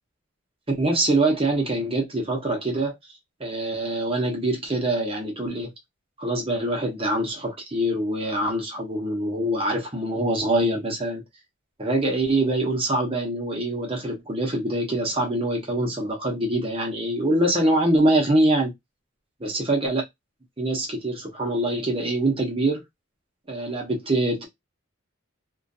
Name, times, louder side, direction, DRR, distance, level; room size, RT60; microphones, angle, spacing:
voice 1, 0.7-2.9 3.4-5.7 6.2-11.2 11.8-18.7 19.4-20.0 20.6-22.8 23.5-24.5, right 1 dB, 25° right, 0.7 m, -24 dB
2.4 x 2.2 x 2.6 m
head